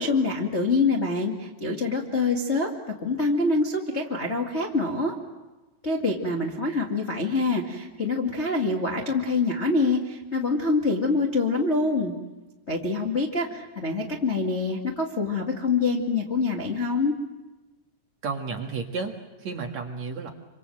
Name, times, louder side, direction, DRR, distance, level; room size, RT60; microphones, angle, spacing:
voice 1, 0.0-2.7 3.0-5.1 5.8-12.1 12.7-17.1, left 3 dB, 65° left, -1 dB, 0.6 m, -25 dB
voice 2, 18.2-20.3, right 4 dB, 55° right, 2 dB, 2.2 m, -32 dB
28.5 x 25.5 x 7.8 m, 1.1 s
omnidirectional pair, 5.3 m